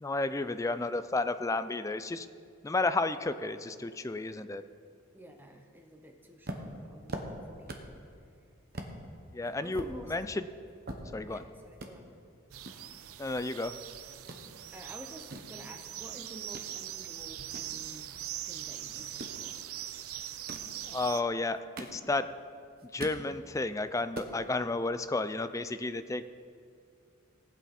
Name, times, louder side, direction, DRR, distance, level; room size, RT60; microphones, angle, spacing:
voice 1, 0.0-2.3 2.6-4.6 9.3-9.8 10.1-10.3 11.1-11.4 13.2-13.7 20.9-22.3 22.9-26.3, left 2 dB, 15° left, 11 dB, 0.3 m, -32 dB
voice 2, 5.1-7.8 9.6-10.1 11.3-12.1 14.7-19.6, equal, 10° right, 4 dB, 0.8 m, -50 dB
sound 1, 6.4-8.0 8.3-8.4 8.7-9.0 9.4-11.4 11.7-11.9 12.6-13.8 14.1-14.4 15.0-16.7 17.1-18.4 19.0-19.4 20.3-20.8 21.4-22.4 22.7-23.3 23.7-23.8 24.0-24.4, right 1 dB, 45° right, 1.1 m, -43 dB
sound 2, 12.5-21.2, right 11 dB, 85° right, 0.5 m, -42 dB
18.5 x 8.4 x 4.2 m, 2.3 s
head